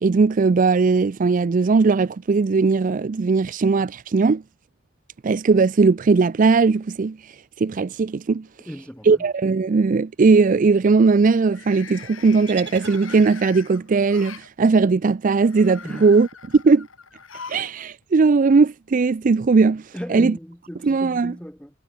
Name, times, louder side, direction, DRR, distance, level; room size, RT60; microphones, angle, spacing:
voice 1, 0.0-4.4 5.2-8.5 9.0-16.3 16.5-16.9 17.5-20.4 20.8-21.4, right 4 dB, 40° right, 0.4 m, -18 dB
sound 1, 7.9-8.5 8.9-9.3 11.4-14.5 15.3-17.7 18.0-18.1 19.2-19.3, left 6 dB, 75° left, 3.9 m, -42 dB
voice 2, 8.7-9.2 15.8-16.1 19.9-21.7, equal, 5° left, 5.5 m, -36 dB
sound 2, 12.5-13.8, right 7 dB, 55° right, 4.0 m, -40 dB
head